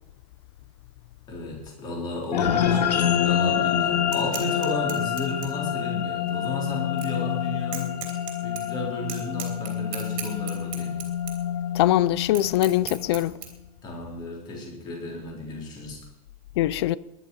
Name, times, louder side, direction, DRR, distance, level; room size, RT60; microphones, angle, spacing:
voice 1, 1.3-7.9 8.4-11.0 13.8-16.0, left 2 dB, 20° left, 3.9 m, -33 dB
sound 1, 2.3-13.0, left 9 dB, 85° left, 1.5 m, -27 dB
sound 2, 4.0-13.5, right 9 dB, 25° right, 3.2 m, -40 dB
voice 2, 11.7-13.3 16.6-17.0, left 14 dB, 40° left, 0.5 m, -22 dB
20.0 x 11.0 x 5.5 m
supercardioid pair, 165°, 21 cm